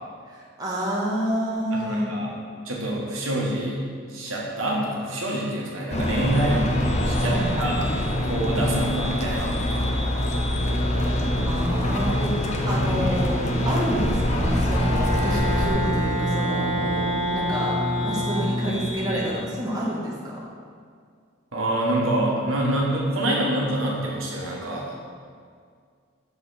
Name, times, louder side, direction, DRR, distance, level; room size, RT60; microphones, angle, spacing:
voice 1, 0.3-2.1 7.2-7.7 11.4-13.4 13.6-16.7 17.3-17.7 18.0-20.4, equal, 20° right, -6 dB, 1.2 m, -29 dB
voice 2, 1.7-2.3 2.6-3.8 4.1-6.7 7.0-7.9 8.2-9.9 21.5-24.8, right 1 dB, 75° right, -3 dB, 1.4 m, -26 dB
sound 1, 5.9-15.7, left 1 dB, 35° left, 0.7 m, -26 dB
sound 2, 6.0-19.3, equal, 55° left, 1.7 m, -28 dB
Bowed string instrument, 14.4-19.0, equal, 40° right, 1.0 m, -28 dB
7.0 x 5.6 x 4.1 m, 2.1 s
head